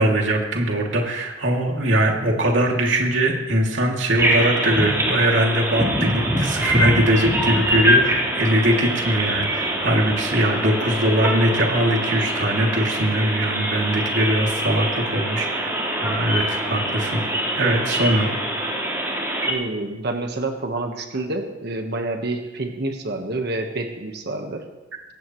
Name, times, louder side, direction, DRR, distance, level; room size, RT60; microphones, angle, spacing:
voice 1, 0.0-17.2 17.5-18.3, right 1 dB, 80° right, 0 dB, 2.7 m, -21 dB
sound 1, 4.2-19.5, equal, 15° right, 4.0 m, -24 dB
voice 2, 19.4-24.6, right 2 dB, 60° right, 4 dB, 1.4 m, -28 dB
21.5 x 17.0 x 3.2 m, 1.1 s
head